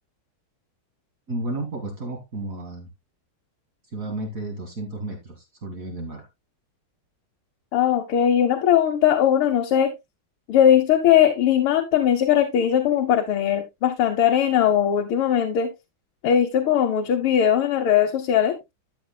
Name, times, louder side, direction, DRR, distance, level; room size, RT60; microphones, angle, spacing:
voice 1, 1.3-2.9 3.9-6.3, right 2 dB, 40° right, 1 dB, 2.3 m, -32 dB
voice 2, 7.7-9.9 10.5-15.7 16.2-18.5, left 9 dB, 85° left, 4 dB, 1.9 m, -19 dB
12.5 x 8.0 x 2.2 m, 0.21 s
omnidirectional pair, 2.3 m